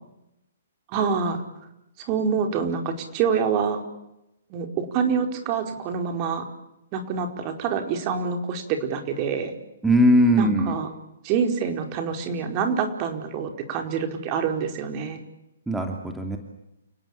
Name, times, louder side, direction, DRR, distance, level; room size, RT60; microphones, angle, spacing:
voice 1, 0.9-1.4 2.0-3.8 4.5-6.5 6.9-9.5 10.4-10.9 11.2-15.2, right 6 dB, 35° right, 5 dB, 4.7 m, -26 dB
voice 2, 9.8-10.7 15.7-16.4, equal, 5° right, 3 dB, 2.8 m, -19 dB
29.5 x 18.0 x 8.7 m, 0.86 s
hypercardioid pair, 130°, 0 cm